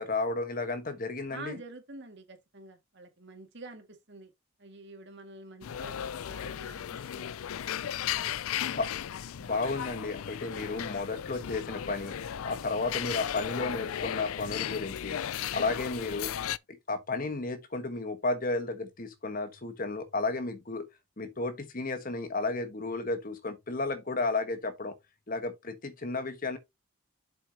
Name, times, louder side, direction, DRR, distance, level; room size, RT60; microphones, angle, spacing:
voice 1, 0.0-1.6 8.7-8.9 9.4-15.2 15.5-16.3 16.9-20.9 21.2-24.9 25.3-26.6, left 3 dB, 40° left, 1.2 m, -33 dB
voice 2, 1.3-4.3 4.6-7.3 8.1-8.4, right 2 dB, 55° right, 2.0 m, -47 dB
sound 1, 5.6-16.6, left 10 dB, 85° left, 0.4 m, -36 dB
7.6 x 6.3 x 2.8 m
head